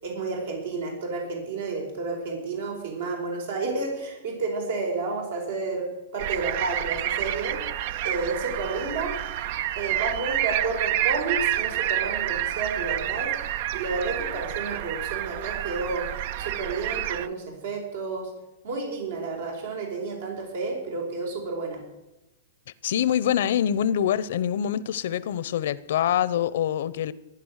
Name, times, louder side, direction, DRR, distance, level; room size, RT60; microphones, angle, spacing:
voice 1, 0.0-5.9 6.1-7.6 8.0-9.1 9.8-13.3 13.7-16.0 16.4-18.3 18.6-21.8, right 3 dB, 75° right, 4.8 m, -31 dB
sound 1, 6.2-17.3, right 13 dB, 55° right, 0.6 m, -29 dB
voice 2, 22.8-27.1, left 10 dB, 70° left, 0.8 m, -25 dB
15.0 x 10.5 x 6.5 m
hypercardioid pair, 140°, 0 cm